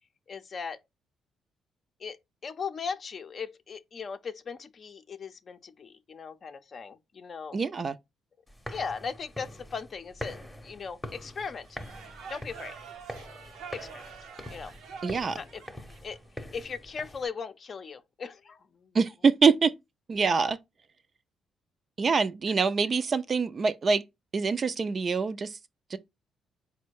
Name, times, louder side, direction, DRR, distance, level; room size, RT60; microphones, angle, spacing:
voice 1, 0.3-0.8 2.0-7.6 8.7-11.8 12.3-12.7 13.7-14.1 14.5-14.7 15.3-15.6 16.0-19.0, left 5 dB, 45° left, 0.5 m, -38 dB
voice 2, 7.5-8.0 15.0-15.4 18.9-19.7 20.1-20.6 22.0-24.0 24.3-25.6 25.9-26.0, right 5 dB, 40° right, 0.4 m, -25 dB
sound 1, 8.5-17.3, left 1 dB, 10° left, 0.8 m, -44 dB
sound 2, 11.6-16.2, right 6 dB, 85° right, 0.8 m, -46 dB
4.2 x 2.1 x 4.6 m
cardioid pair, 90°, 0 cm